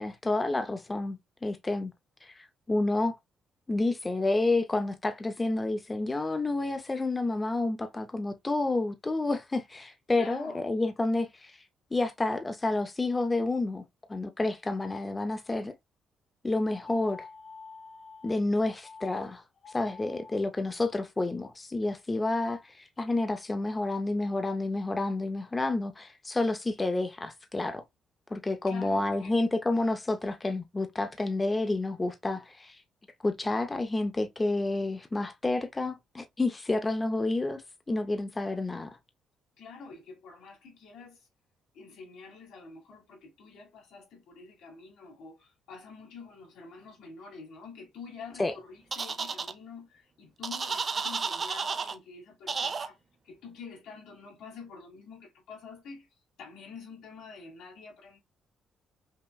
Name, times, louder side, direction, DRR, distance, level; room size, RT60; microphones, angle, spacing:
voice 1, 0.0-1.9 2.2-3.2 3.7-11.6 11.9-13.8 14.1-15.7 16.4-17.3 18.2-19.4 19.7-27.8 28.3-32.8 33.2-39.0 48.4-48.5, left 2 dB, 20° left, 0.5 m, -29 dB
voice 2, 10.1-10.7 28.7-29.3 39.6-41.3 41.7-53.0 53.2-56.1 56.4-58.2, left 4 dB, 85° left, 1.9 m, -47 dB
sound 1, 16.5-18.4 18.8-19.2 19.6-20.4, left 4 dB, 55° left, 1.1 m, -47 dB
sound 2, 48.9-49.5 50.4-51.9 52.5-52.9, right 5 dB, 40° right, 0.5 m, -32 dB
5.5 x 2.0 x 2.3 m
cardioid pair, 90°, 0 cm